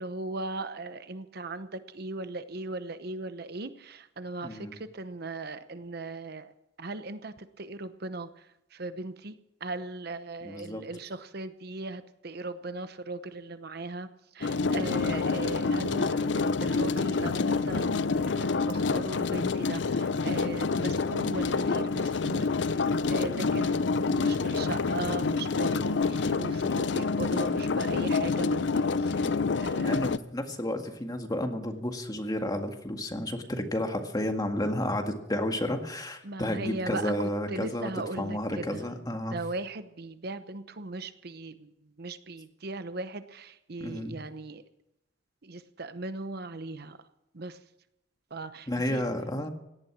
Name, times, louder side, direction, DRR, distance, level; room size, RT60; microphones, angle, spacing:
voice 1, 0.0-6.5 6.8-30.1 36.2-38.9 39.3-41.7 42.0-44.6 45.4-47.0 47.3-47.6 48.3-49.1, right 2 dB, 55° right, 11 dB, 0.9 m, -38 dB
voice 2, 4.4-4.7 10.4-10.8 23.3-23.5 29.8-37.9 38.2-39.4 43.8-44.2 48.7-49.5, left 1 dB, 20° left, 4 dB, 1.9 m, -32 dB
sound 1, 14.4-30.2, left 4 dB, 70° left, 0.6 m, -27 dB
17.5 x 12.0 x 6.2 m, 0.87 s
head